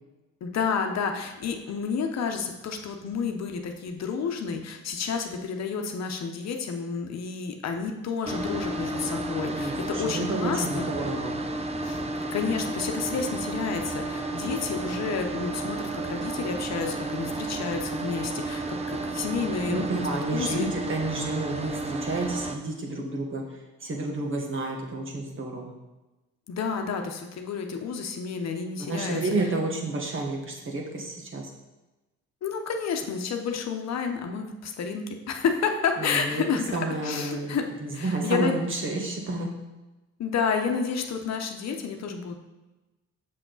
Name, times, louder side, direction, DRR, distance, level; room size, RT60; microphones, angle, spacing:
voice 1, 0.4-10.9 11.8-12.0 12.3-20.7 26.5-29.2 32.4-36.8 37.0-37.6 37.9-38.5 40.2-42.4, left 6 dB, 60° left, 4 dB, 0.9 m, -30 dB
sound 1, 8.3-22.6, right 2 dB, 20° right, 0.7 m, -32 dB
voice 2, 9.5-11.4 19.6-23.4 23.8-25.7 28.9-31.5 36.0-36.4 36.7-37.5 37.8-39.5, right 2 dB, 40° right, 0 dB, 1.5 m, -30 dB
6.6 x 6.0 x 4.0 m, 1.1 s
cardioid pair, 90°, 30 cm